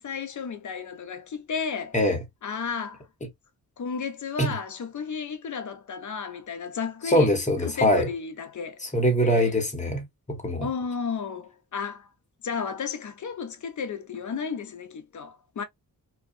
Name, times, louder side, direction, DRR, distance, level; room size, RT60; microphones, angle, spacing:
voice 1, 0.0-2.0 2.4-3.1 3.8-8.8 9.2-9.6 10.6-12.1 12.4-15.6, left 6 dB, 50° left, 0.7 m, -33 dB
voice 2, 7.1-8.1 8.8-10.7, equal, 20° left, 1.0 m, -23 dB
2.7 x 2.2 x 2.4 m
cardioid pair, 85°, 38 cm